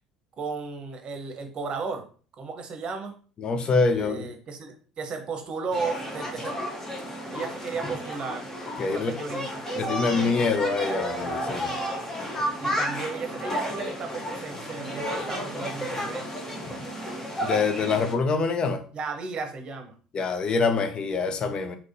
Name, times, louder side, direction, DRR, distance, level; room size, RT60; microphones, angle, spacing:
voice 1, 0.4-2.0 2.4-3.1 3.9-6.6 7.3-8.5 8.8-9.5 12.6-16.3 18.9-19.9, right 4 dB, 40° right, 0.8 m, -34 dB
voice 2, 3.4-4.3 8.8-9.1 9.8-11.8 17.4-18.8 20.1-21.8, left 4 dB, 40° left, 0.5 m, -25 dB
sound 1, 5.7-18.1, equal, 20° left, 0.9 m, -32 dB
3.5 x 2.9 x 2.6 m
hypercardioid pair, 65°, 2 cm